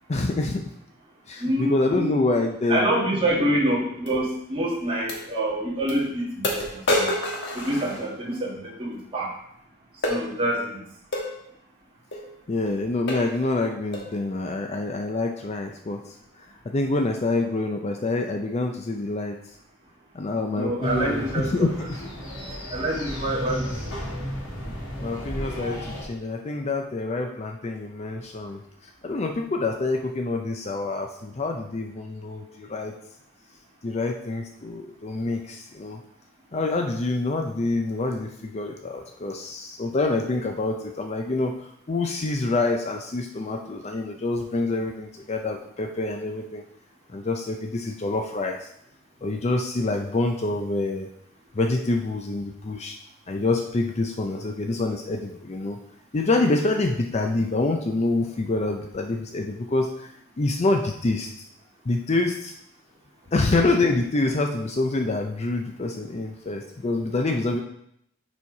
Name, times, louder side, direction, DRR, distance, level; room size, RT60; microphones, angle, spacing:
voice 1, 0.1-0.6 1.3-2.9 3.3-3.5 12.5-16.0 16.7-19.4 20.1-22.0 25.0-28.6 29.0-32.9 33.8-36.0 36.5-46.6 47.1-48.7 49.2-51.1 51.5-53.0 53.3-55.8 56.1-61.3 61.9-62.5 63.3-67.6, left 2 dB, 30° left, 3 dB, 0.5 m, -26 dB
voice 2, 1.4-2.3 2.7-7.1 7.5-9.3 10.1-10.8 20.5-21.5 22.7-23.9, right 1 dB, 25° right, -5 dB, 1.8 m, -26 dB
sound 1, 4.1-4.2 5.1-5.2 5.9-6.0 6.4-8.4 10.0-10.2 11.1-11.3 12.1-12.3 12.7-12.8 13.1-13.4 13.9-14.2, left 1 dB, 55° left, 1.4 m, -27 dB
sound 2, 20.8-26.0, equal, 80° left, 2.4 m, -33 dB
7.0 x 4.4 x 4.7 m, 0.74 s
head